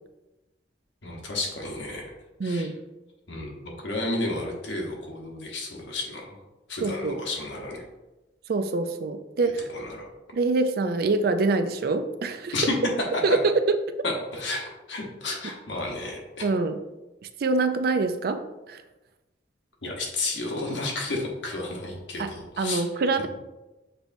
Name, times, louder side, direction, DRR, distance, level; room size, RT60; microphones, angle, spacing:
voice 1, 1.0-2.1 2.4-2.7 3.3-6.3 6.7-7.8 9.4-10.1 12.5-12.7 13.1-13.4 14.0-16.4 19.8-22.8, left 2 dB, 85° left, -1 dB, 1.1 m, -32 dB
voice 2, 2.4-2.8 6.8-7.2 8.5-9.7 10.3-12.5 13.2-13.5 16.4-16.8 17.4-18.4 18.7-18.8 22.2-23.3, right 3 dB, 55° right, 9 dB, 0.4 m, -25 dB
6.7 x 3.0 x 2.6 m, 1.1 s
head